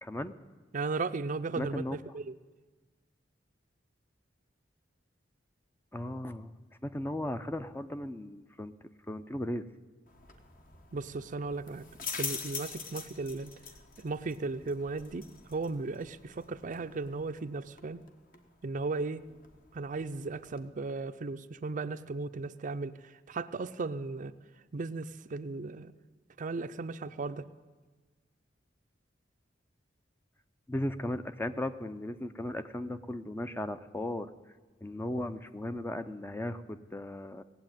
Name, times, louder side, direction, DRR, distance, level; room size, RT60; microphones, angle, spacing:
voice 1, 0.0-0.4 1.6-2.0 5.9-6.5 6.8-8.7 9.1-9.7 30.7-34.3 34.8-37.4, left 1 dB, 10° left, 10 dB, 0.5 m, -36 dB
voice 2, 0.7-2.3 10.9-11.8 12.2-13.5 14.0-18.0 18.6-19.2 19.7-24.3 24.7-25.9 26.4-27.5, right 3 dB, 45° right, 12 dB, 0.5 m, -36 dB
sound 1, 10.1-20.7, left 5 dB, 50° left, 1.4 m, -45 dB
18.0 x 8.1 x 9.0 m, 1.4 s
head